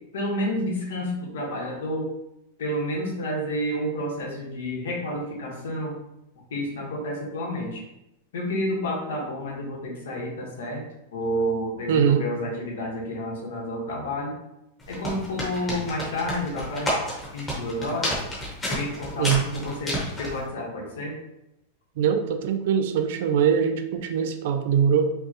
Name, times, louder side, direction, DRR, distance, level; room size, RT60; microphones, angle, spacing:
voice 1, 0.1-2.1 2.6-5.9 6.5-7.8 8.3-10.8 11.1-14.3 14.9-16.9 17.3-18.2 18.6-21.1, equal, 90° left, -2 dB, 1.3 m, -30 dB
voice 2, 11.9-12.2 19.2-19.4 22.0-25.1, right 7 dB, 50° right, 8 dB, 0.4 m, -22 dB
sound 1, 14.8-20.4, equal, 10° left, 0.9 m, -30 dB
5.3 x 2.3 x 2.9 m, 0.87 s
supercardioid pair, 175°, 0 cm